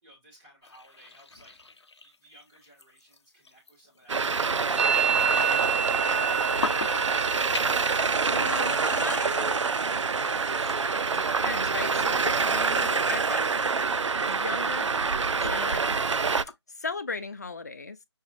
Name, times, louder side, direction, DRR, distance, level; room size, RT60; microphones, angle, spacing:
voice 1, 0.0-8.1, equal, 10° right, 1.8 m, -59 dB
sound 1, 0.6-16.5, left 3 dB, 65° left, 0.7 m, -44 dB
Traffic noise roadway noise, 4.1-16.4, right 5 dB, 85° right, 0.4 m, -26 dB
Musical instrument, 4.8-12.4 12.7-13.2 13.5-14.1 14.4-16.4, right 7 dB, 25° right, 0.4 m, -32 dB
voice 2, 8.2-9.6 10.8-13.5 14.3-14.9 15.4-16.1 16.8-18.0, left 4 dB, 35° left, 0.5 m, -36 dB
6.3 x 2.9 x 2.5 m
figure-of-eight pair, 170°, 15 cm